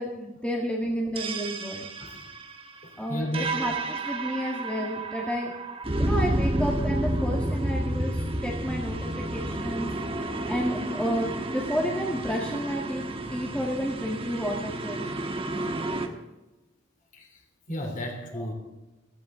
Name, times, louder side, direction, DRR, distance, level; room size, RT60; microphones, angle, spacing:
voice 1, 0.0-1.9 3.0-5.5 6.0-9.9 10.4-13.1 13.3-15.1 18.3-18.4, equal, 5° left, -2 dB, 1.8 m, -31 dB
sound 1, 1.2-16.1, right 1 dB, 30° right, 1.4 m, -30 dB
voice 2, 2.8-3.5 17.1-17.4 17.7-18.5, left 1 dB, 45° left, 2 dB, 3.3 m, -33 dB
16.0 x 15.0 x 3.8 m, 1.1 s
head